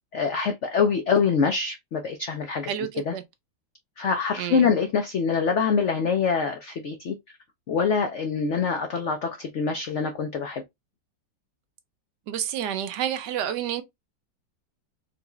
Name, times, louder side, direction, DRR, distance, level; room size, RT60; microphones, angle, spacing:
voice 1, 0.1-2.7 3.1-3.2 4.0-7.1 7.7-10.6, left 5 dB, 75° left, 0.6 m, -25 dB
voice 2, 2.7-3.2 4.4-4.7 12.3-13.8, right 10 dB, 75° right, 1.2 m, -29 dB
3.9 x 2.9 x 2.3 m
omnidirectional pair, 1.9 m